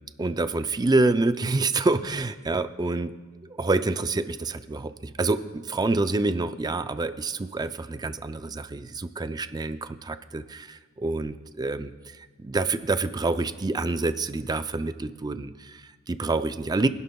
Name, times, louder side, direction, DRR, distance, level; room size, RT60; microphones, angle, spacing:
voice 1, 0.2-3.1 3.4-16.9, right 3 dB, 20° right, 11 dB, 0.4 m, -27 dB
23.5 x 11.0 x 2.3 m, 1.3 s
head